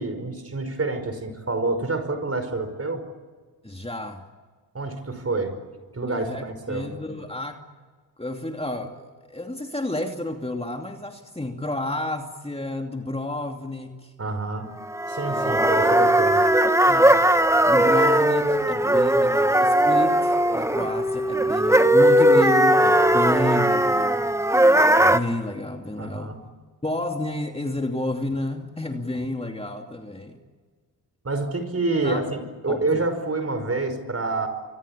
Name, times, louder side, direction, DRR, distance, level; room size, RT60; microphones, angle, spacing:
voice 1, 0.0-3.0 4.7-5.6 5.9-6.9 14.2-14.7 15.1-16.4 26.0-26.4 31.2-34.5, right 3 dB, 35° right, 9 dB, 5.2 m, -27 dB
voice 2, 3.6-4.2 6.1-7.6 8.2-14.1 15.3-15.9 16.9-17.3 17.7-24.3 25.0-26.3 26.8-30.4 32.0-32.2 32.7-33.1, left 2 dB, 15° left, 4 dB, 2.7 m, -31 dB
sound 1, 14.9-25.2, right 1 dB, 5° right, 1.6 m, -18 dB
25.0 x 25.0 x 8.7 m, 1.5 s
supercardioid pair, 55°, 42 cm